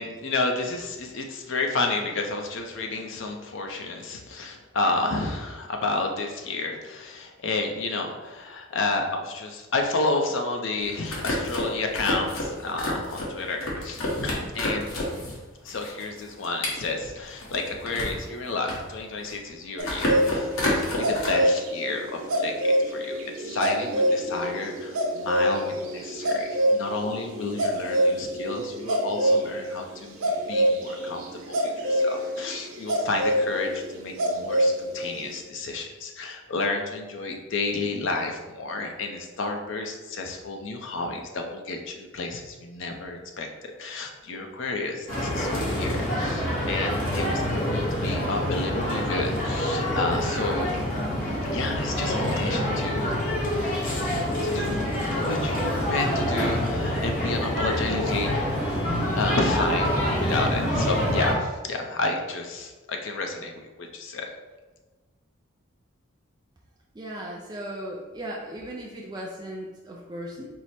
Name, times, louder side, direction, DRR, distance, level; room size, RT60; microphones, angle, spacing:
voice 1, 0.0-15.0 15.6-22.5 22.9-47.4 47.7-50.7 51.4-54.9 55.1-58.8 59.1-59.9 60.2-64.3, left 3 dB, 60° left, 3 dB, 0.5 m, -31 dB
sound 1, 10.8-15.4 15.7-18.2 18.6-19.5 19.8-21.3, left 1 dB, 85° left, 1.1 m, -29 dB
sound 2, 19.8-29.5 30.2-34.7 35.0-35.3, right 1 dB, 90° right, 0.7 m, -25 dB
sound 3, 45.1-61.3, equal, 40° left, 0.9 m, -26 dB
voice 2, 67.0-70.5, right 1 dB, 20° right, -3 dB, 0.4 m, -37 dB
4.6 x 2.0 x 4.1 m, 1.2 s
head